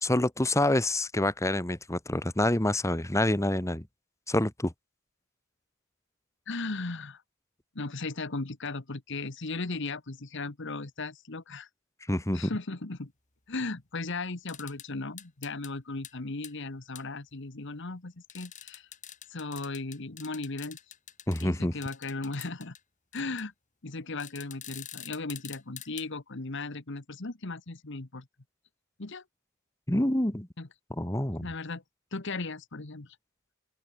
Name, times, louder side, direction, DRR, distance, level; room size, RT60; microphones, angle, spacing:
voice 1, 0.0-3.8 4.3-4.7 12.1-12.5 21.3-21.8 29.9-30.5 31.0-31.5, left 1 dB, 15° left, 1.7 m, -27 dB
voice 2, 6.5-7.2 7.7-11.7 12.3-13.1 13.5-18.9 19.3-20.8 21.4-22.7 23.1-23.5 23.8-28.3 29.0-29.2 30.6-30.7 31.4-31.8 32.1-33.2, left 3 dB, 60° left, 1.4 m, -36 dB
sound 1, 14.5-14.9 15.2-15.7 16.0-16.1 16.4-16.5 16.9-17.0 18.3-21.5 21.8-22.8 23.1-23.4 24.2-26.1, left 10 dB, 35° left, 5.6 m, -45 dB
head